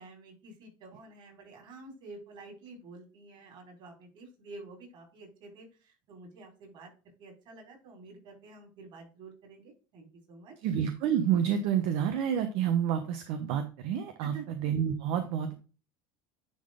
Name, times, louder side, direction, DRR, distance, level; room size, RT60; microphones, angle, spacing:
voice 1, 0.0-6.9 7.2-10.5 14.2-14.5, right 3 dB, 50° right, 1 dB, 4.5 m, -49 dB
voice 2, 10.6-15.5, right 9 dB, 70° right, 7 dB, 1.0 m, -29 dB
10.0 x 3.9 x 3.7 m, 0.34 s
supercardioid pair, 125°, 10 cm